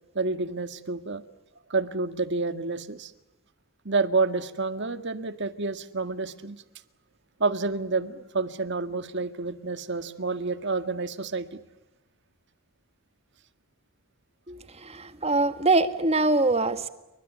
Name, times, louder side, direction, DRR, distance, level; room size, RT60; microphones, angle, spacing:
voice 1, 0.2-1.2 1.7-3.1 3.9-6.6 7.4-11.6, right 3 dB, 55° right, 11 dB, 1.8 m, -29 dB
voice 2, 14.5-16.9, right 2 dB, 30° right, 11 dB, 1.8 m, -24 dB
29.0 x 24.5 x 8.4 m, 0.97 s
head